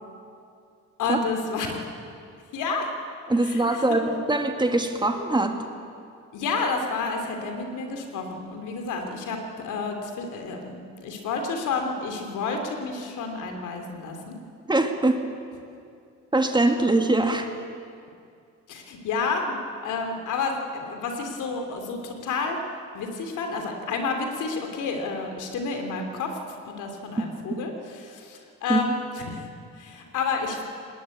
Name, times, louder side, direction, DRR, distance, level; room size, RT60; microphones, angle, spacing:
voice 1, 1.0-1.8 2.5-2.9 3.4-4.0 6.3-14.3 18.7-22.6 22.9-29.5 29.7-30.6, left 4 dB, 85° left, 4 dB, 3.3 m, -30 dB
voice 2, 3.3-5.6 14.7-15.2 16.3-17.5 27.5-27.6 28.7-28.8, right 2 dB, 15° right, 5 dB, 2.1 m, -22 dB
19.5 x 19.0 x 8.7 m, 2.4 s
cardioid pair, 90°, 30 cm